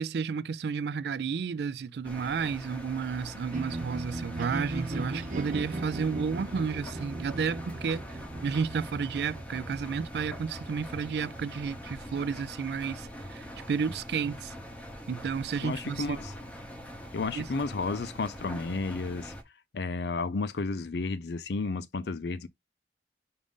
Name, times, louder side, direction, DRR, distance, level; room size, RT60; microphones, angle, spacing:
voice 1, 0.0-14.5 15.1-16.2 17.3-17.4, right 6 dB, 65° right, 0.3 m, -32 dB
Engine, 2.0-19.4, equal, 10° left, 0.7 m, -43 dB
sound 1, 3.5-13.6, right 2 dB, 45° right, 0.8 m, -39 dB
voice 2, 15.6-16.3 17.1-19.3 19.7-22.5, left 3 dB, 70° left, 0.5 m, -32 dB
5.0 x 2.6 x 3.5 m
head